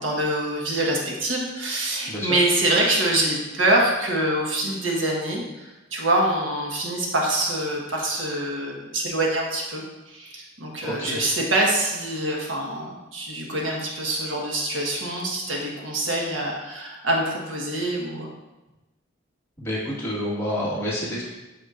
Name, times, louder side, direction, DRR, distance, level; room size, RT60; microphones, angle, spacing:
voice 1, 0.0-18.3, right 1 dB, 85° right, -1 dB, 1.4 m, -25 dB
voice 2, 10.8-11.2 19.6-21.3, equal, 15° left, -7 dB, 1.7 m, -28 dB
8.1 x 5.8 x 2.6 m, 1.0 s
head